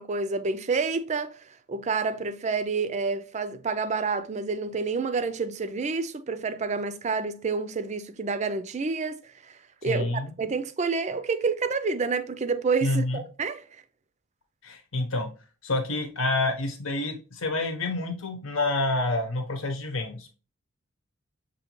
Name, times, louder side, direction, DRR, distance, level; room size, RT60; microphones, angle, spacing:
voice 1, 0.0-9.2 9.8-13.6, right 4 dB, 35° right, 0.4 m, -28 dB
voice 2, 9.8-10.3 12.8-13.2 14.6-15.3 15.6-20.3, left 2 dB, 80° left, 1.1 m, -28 dB
6.3 x 2.7 x 3.0 m
head